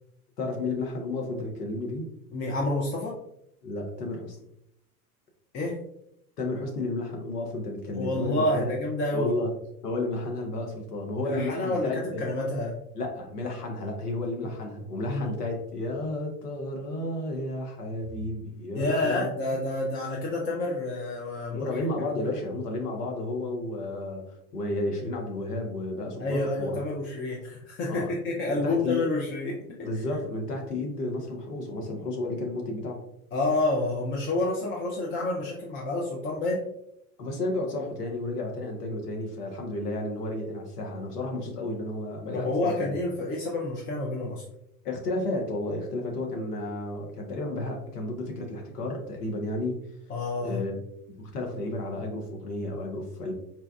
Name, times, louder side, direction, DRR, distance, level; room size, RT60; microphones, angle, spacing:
voice 1, 0.4-2.1 3.6-4.4 6.4-8.7 9.1-9.5 9.8-12.2 12.9-19.3 21.5-26.8 27.9-28.1 28.5-29.0 29.8-33.0 37.2-43.0 44.8-49.8 50.4-50.8 51.1-53.3, left 2 dB, 85° left, 2 dB, 0.9 m, -32 dB
voice 2, 2.3-3.2 5.5-5.8 7.9-9.3 11.3-12.8 14.4-14.5 15.1-15.3 18.7-22.3 26.2-29.9 33.3-36.7 42.3-44.4 50.1-50.6, left 2 dB, 25° left, -2 dB, 0.5 m, -29 dB
4.2 x 2.2 x 2.3 m, 0.77 s
hypercardioid pair, 85°, 46 cm